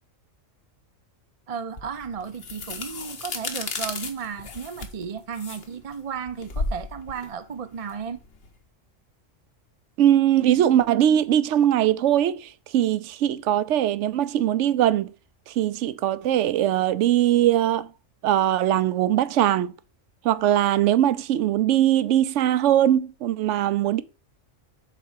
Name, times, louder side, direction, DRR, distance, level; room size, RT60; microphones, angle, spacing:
voice 1, 1.5-8.2, right 6 dB, 40° right, 0.5 m, -34 dB
sound 1, 1.8-8.5, left 3 dB, 55° left, 1.3 m, -34 dB
voice 2, 10.0-15.1 15.5-17.9 18.2-19.7 20.2-24.0, right 11 dB, 70° right, 0.9 m, -21 dB
7.4 x 4.1 x 6.4 m
omnidirectional pair, 1.3 m